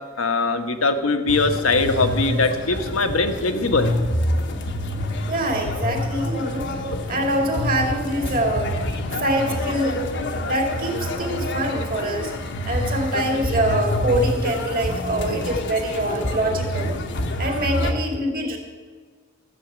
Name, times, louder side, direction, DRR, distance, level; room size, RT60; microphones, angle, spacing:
voice 1, 0.2-3.9, left 3 dB, 75° left, 7 dB, 1.2 m, -21 dB
sound 1, 1.3-17.9, left 1 dB, 60° left, 1.1 m, -27 dB
voice 2, 5.3-6.7 7.1-8.7 9.2-10.0 10.4-12.3 12.6-17.0 17.4-18.6, right 1 dB, 45° right, 2 dB, 2.5 m, -24 dB
13.5 x 7.8 x 8.1 m, 1.5 s
head